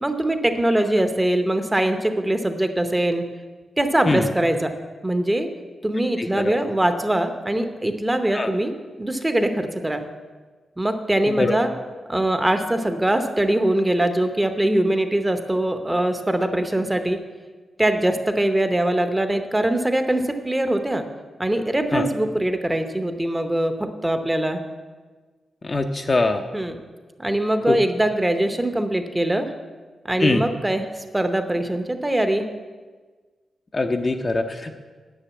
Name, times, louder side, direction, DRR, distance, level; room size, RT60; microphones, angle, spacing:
voice 1, 0.0-3.2 3.8-4.7 5.0-5.5 5.8-8.7 9.0-10.0 10.8-11.7 12.1-17.2 17.8-21.0 21.4-24.6 26.5-26.7 27.2-29.5 30.1-32.4, right 1 dB, 10° right, 7 dB, 0.8 m, -22 dB
voice 2, 6.2-6.6 8.3-8.5 11.3-11.6 21.9-22.1 25.6-26.4 27.7-27.8 30.2-30.4 33.7-34.7, left 3 dB, 25° left, 5 dB, 0.6 m, -22 dB
9.9 x 6.7 x 8.4 m, 1.4 s
wide cardioid pair, 170°, 0 cm